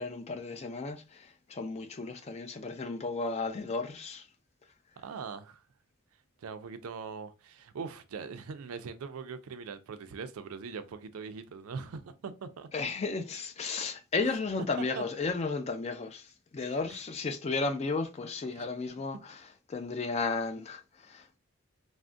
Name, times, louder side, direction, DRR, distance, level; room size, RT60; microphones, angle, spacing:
voice 1, 0.0-4.3 12.7-21.4, left 4 dB, 30° left, 0.3 m, -34 dB
voice 2, 5.0-5.6 6.4-12.7 15.0-15.1 16.6-16.8 18.6-18.7, right 5 dB, 80° right, 0.4 m, -41 dB
3.4 x 2.1 x 2.5 m
head